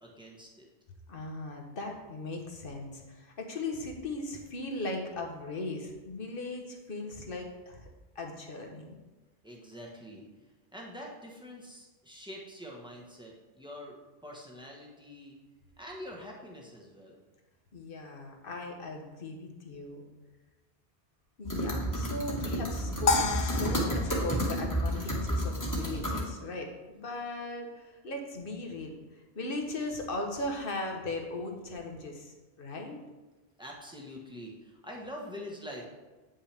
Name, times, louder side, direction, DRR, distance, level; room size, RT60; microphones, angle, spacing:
voice 1, 0.0-0.7 9.4-10.2 10.7-15.3 15.8-17.2 33.6-35.8, equal, 5° right, -2 dB, 1.2 m, -45 dB
voice 2, 1.1-7.9 8.1-9.0 17.7-20.0 21.4-33.0, left 2 dB, 60° left, 2 dB, 1.2 m, -38 dB
sound 1, 21.4-26.2, equal, 20° left, 1.5 m, -31 dB
sound 2, 23.1-25.5, left 4 dB, 85° left, 1.0 m, -31 dB
8.8 x 5.7 x 3.4 m, 1.2 s
omnidirectional pair, 1.1 m